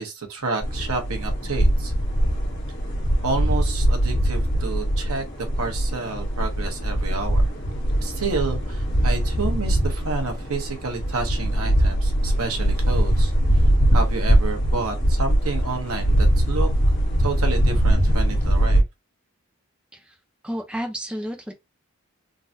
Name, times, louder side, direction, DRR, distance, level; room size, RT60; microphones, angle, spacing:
voice 1, 0.0-1.9 3.2-7.5 8.0-13.3 13.9-16.7 17.2-18.8, right 4 dB, 85° right, 1.1 m, -30 dB
sound 1, 0.6-18.8, right 1 dB, 50° left, 1.6 m, -21 dB
voice 2, 20.4-21.5, equal, 5° right, 0.5 m, -30 dB
3.8 x 2.6 x 2.6 m
head